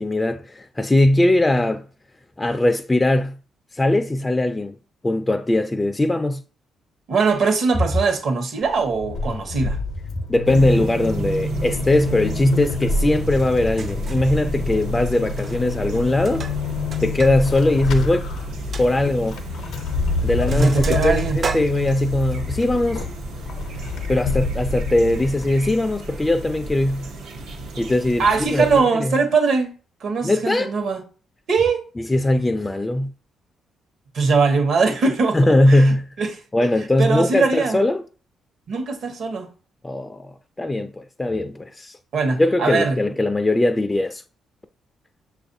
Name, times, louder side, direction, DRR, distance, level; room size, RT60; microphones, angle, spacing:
voice 1, 0.0-1.8 2.4-3.4 3.7-4.7 5.0-6.4 10.3-16.4 17.0-18.3 18.8-19.4 20.2-23.1 24.1-27.1 27.8-29.2 30.2-30.7 32.0-33.1 35.3-36.1 36.5-38.0 39.8-42.0 42.4-44.2, left 1 dB, 15° left, 0.3 m, -20 dB
voice 2, 7.1-9.8 20.5-21.4 28.2-29.7 30.0-31.0 31.5-31.8 34.1-36.7 37.0-37.8 38.7-39.5 42.1-43.0, right 4 dB, 65° right, 1.0 m, -21 dB
Vehicle / Accelerating revving vroom / Squeak, 8.6-25.8, left 3 dB, 80° left, 0.6 m, -28 dB
sound 1, 10.5-28.8, right 2 dB, 90° right, 0.8 m, -34 dB
Sink (filling or washing), 13.4-13.5 13.8-14.3 15.3-15.7 15.9-17.4 17.7-17.8 18.2-18.3 18.7-18.9 19.7-19.9 20.2-22.4, right 4 dB, 45° right, 0.4 m, -33 dB
6.4 x 2.4 x 2.6 m
cardioid pair, 90°, 0 cm